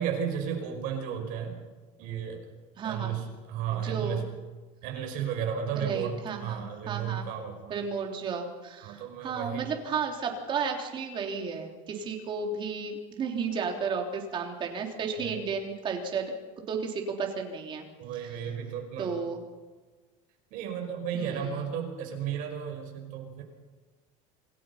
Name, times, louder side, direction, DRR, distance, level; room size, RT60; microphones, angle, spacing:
voice 1, 0.0-1.6 2.0-2.4 2.8-4.2 4.8-7.8 8.8-9.7 15.2-15.4 18.0-19.2 20.5-23.4, right 8 dB, 55° right, 3 dB, 5.6 m, -33 dB
voice 2, 2.8-3.2 3.7-4.3 5.8-7.3 7.7-16.3 16.7-17.9 19.0-19.4 21.1-21.6, right 5 dB, 30° right, 2 dB, 3.4 m, -33 dB
27.0 x 17.5 x 5.8 m, 1.3 s
cardioid pair, 160°, 17 cm